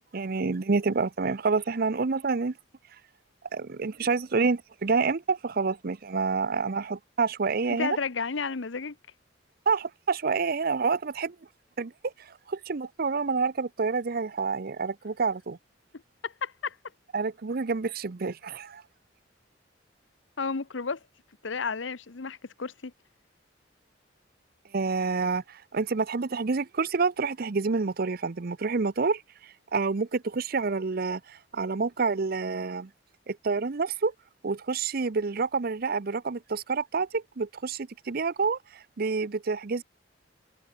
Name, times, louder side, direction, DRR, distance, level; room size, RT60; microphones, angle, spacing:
voice 1, 0.1-2.5 3.5-8.0 9.7-11.4 11.8-11.9 12.2-15.6 17.1-18.8 24.7-29.2 29.7-32.9 33.3-34.1 34.4-39.8, right 4 dB, 50° right, 0.6 m, -28 dB
voice 2, 7.7-9.0 16.2-16.8 20.4-21.0 21.4-22.9, left 5 dB, 75° left, 0.9 m, -32 dB
head